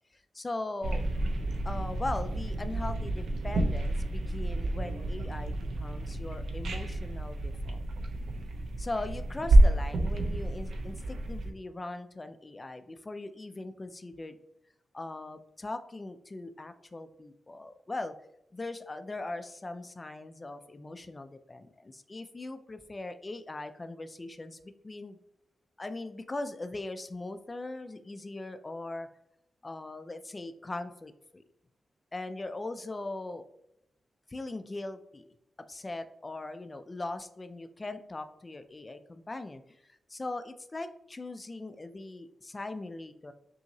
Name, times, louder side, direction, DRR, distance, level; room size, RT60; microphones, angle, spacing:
voice 1, 0.3-1.1 1.6-7.8 8.8-14.4 14.9-18.2 18.5-24.6 24.8-25.2 25.8-29.1 29.6-31.4 32.1-33.4 34.3-35.3 35.7-39.6 40.1-43.3, left 2 dB, 20° left, 9 dB, 0.3 m, -40 dB
sound 1, 0.8-11.5, right 1 dB, 80° right, 0.6 m, -28 dB
5.7 x 2.7 x 2.7 m, 0.80 s
wide cardioid pair, 175°, 0 cm